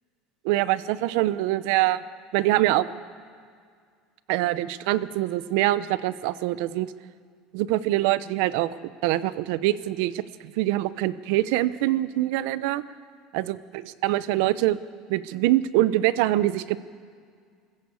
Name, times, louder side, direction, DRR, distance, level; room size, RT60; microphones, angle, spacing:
voice 1, 0.4-2.0 2.3-2.9 4.3-6.9 7.5-8.7 9.0-10.2 10.6-12.8 13.3-13.6 14.0-14.8 15.1-16.8, right 15 dB, 70° right, 15 dB, 0.8 m, -24 dB
27.0 x 14.5 x 8.4 m, 2.1 s
cardioid pair, 160°, 0 cm